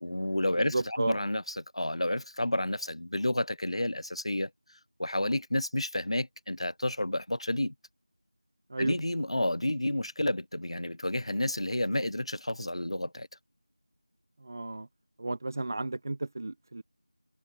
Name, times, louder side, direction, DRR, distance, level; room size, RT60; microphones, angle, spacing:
voice 1, 0.0-4.5 5.0-7.7 8.8-13.3, left 1 dB, 65° left, 1.0 m, -30 dB
voice 2, 0.6-1.2 8.7-9.0 14.4-14.9 15.2-16.8, right 2 dB, 35° right, 1.3 m, -33 dB
figure-of-eight pair, 170°, 3 cm